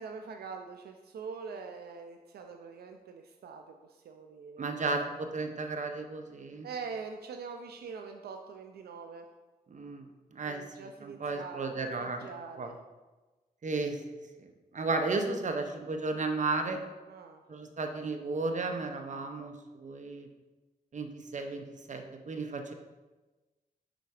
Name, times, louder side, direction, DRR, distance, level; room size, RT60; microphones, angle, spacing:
voice 1, 0.0-4.9 6.6-9.3 10.5-12.8 17.1-17.4, right 5 dB, 85° right, 5 dB, 0.4 m, -44 dB
voice 2, 4.6-6.7 9.7-10.0 10.3-12.3 12.6-12.7 13.6-14.0 14.4-14.5 14.7-16.8 17.5-20.3 20.9-21.6 21.9-22.7, right 3 dB, 50° right, 5 dB, 0.8 m, -34 dB
5.7 x 3.9 x 4.8 m, 1.2 s
cardioid pair, 65°, 16 cm